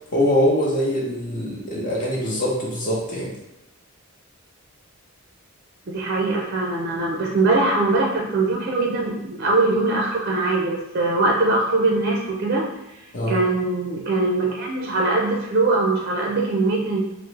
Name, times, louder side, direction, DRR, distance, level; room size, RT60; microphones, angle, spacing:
voice 1, 0.1-3.3 13.1-13.4, equal, 35° left, -4 dB, 0.7 m, -23 dB
voice 2, 5.9-12.7 13.3-17.0, right 2 dB, 45° right, -1 dB, 0.4 m, -22 dB
3.3 x 2.0 x 3.2 m, 0.94 s
head